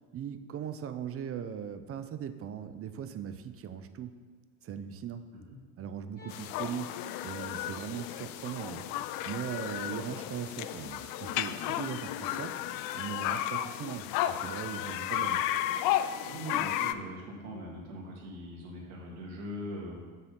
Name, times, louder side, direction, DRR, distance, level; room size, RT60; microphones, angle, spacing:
voice 1, 0.1-4.2 4.6-5.2 5.8-7.0 7.2-8.9 9.3-12.5 12.9-15.4, right 8 dB, 30° right, 10 dB, 0.6 m, -39 dB
Bowed string instrument, 6.2-12.4, left 4 dB, 20° left, 2.5 m, -56 dB
sound 1, 6.3-16.9, left 12 dB, 50° left, 0.5 m, -33 dB
voice 2, 16.3-20.0, equal, 70° right, -2 dB, 2.0 m, -41 dB
6.9 x 4.4 x 6.7 m, 1.4 s
hypercardioid pair, 70°, 44 cm